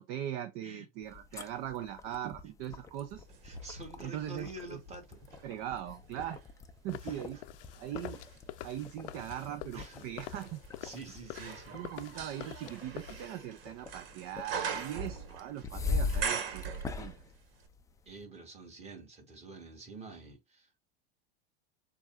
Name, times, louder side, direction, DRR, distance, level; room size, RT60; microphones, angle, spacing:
voice 1, 0.0-3.3 4.0-4.8 5.4-6.4 6.8-7.4 7.8-8.2 8.6-10.6 11.7-17.2, right 11 dB, 45° right, 0.7 m, -40 dB
sound 1, 1.0-18.2, left 4 dB, 10° left, 0.5 m, -42 dB
sound 2, 3.3-5.5 6.0-17.4 17.6-17.7, right 6 dB, 65° right, 1.5 m, -42 dB
voice 2, 3.4-5.2 7.0-7.4 9.7-10.1 10.8-11.8 18.1-20.7, right 2 dB, 20° right, 2.2 m, -47 dB
sound 3, 6.9-13.3, left 13 dB, 65° left, 0.6 m, -47 dB
6.9 x 2.5 x 2.4 m
supercardioid pair, 125°, 31 cm